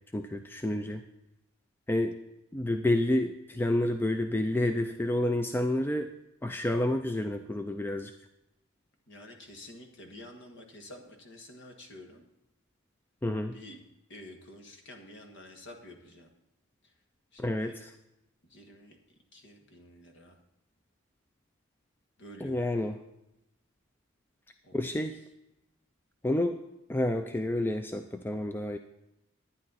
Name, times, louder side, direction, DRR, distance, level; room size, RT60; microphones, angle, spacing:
voice 1, 0.1-1.0 1.9-2.2 2.5-6.1 6.4-8.1 13.2-13.6 17.4-17.9 22.4-23.0 24.7-25.2 26.2-26.6 26.9-28.8, left 1 dB, 10° left, 7 dB, 0.3 m, -29 dB
voice 2, 9.1-12.2 13.5-13.8 14.1-16.3 16.8-16.9 17.3-17.8 18.4-19.0 19.3-20.4 22.2-22.6 24.6-24.8, left 1 dB, 55° left, 3 dB, 1.5 m, -49 dB
11.5 x 9.8 x 4.0 m, 0.90 s
head